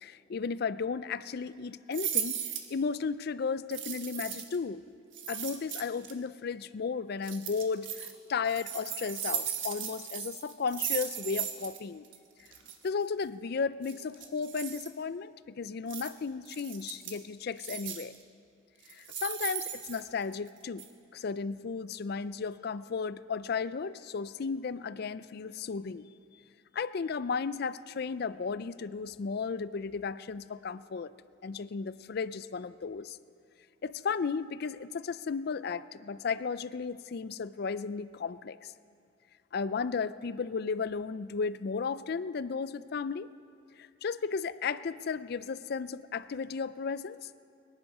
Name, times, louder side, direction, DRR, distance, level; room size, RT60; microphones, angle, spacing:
voice 1, 0.0-2.4 2.7-4.8 5.3-12.1 12.8-18.1 19.0-20.8 21.1-26.1 26.7-31.1 31.4-33.2 33.8-38.7 39.5-43.3 43.8-47.2, left 5 dB, 50° left, 15 dB, 0.4 m, -34 dB
sound 1, 1.9-2.7 3.7-4.6 5.1-6.1 7.2-8.1 8.5-11.8 12.0-12.2 12.5-12.7 13.8-14.9 15.9-16.1 16.5-17.2 17.6-18.2 18.8-20.5 20.8-20.9, right 9 dB, 70° right, 1.4 m, -37 dB
23.0 x 10.5 x 5.5 m, 2.3 s
head